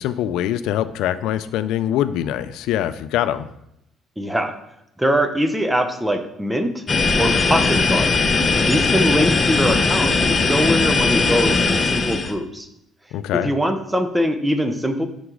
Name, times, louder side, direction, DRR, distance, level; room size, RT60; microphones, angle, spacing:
voice 1, 0.0-3.5 13.1-13.5, left 11 dB, 85° left, 13 dB, 0.3 m, -23 dB
voice 2, 4.2-4.5 5.0-6.8 7.2-8.2 8.6-12.7 13.3-15.1, equal, 5° right, 8 dB, 0.7 m, -22 dB
sound 1, 6.9-12.3, left 4 dB, 25° left, 0.7 m, -19 dB
6.1 x 6.0 x 3.8 m, 0.79 s
cardioid pair, 105°, 0 cm